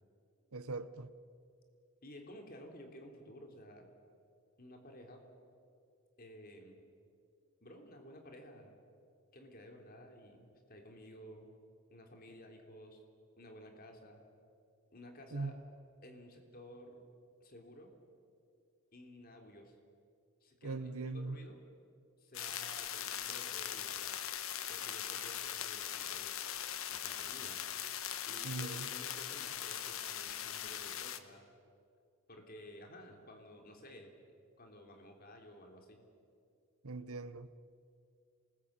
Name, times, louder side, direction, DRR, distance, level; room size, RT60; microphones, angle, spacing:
voice 1, 0.5-1.1 15.3-15.6 20.6-21.4 28.4-28.9 36.8-37.5, right 3 dB, 85° right, 1.0 m, -40 dB
voice 2, 2.0-3.9 4.6-5.2 6.2-6.8 7.6-8.8 9.3-11.5 11.9-13.0 13.4-14.2 14.9-15.6 16.0-17.0 17.4-17.9 18.9-19.8 20.4-21.6 22.2-24.2 24.7-26.4 26.9-27.7 28.3-31.5 32.3-34.2 34.6-36.0, left 1 dB, 40° left, 3.3 m, -54 dB
sound 1, 22.3-31.2, left 10 dB, 70° left, 1.3 m, -40 dB
27.0 x 20.0 x 8.7 m
head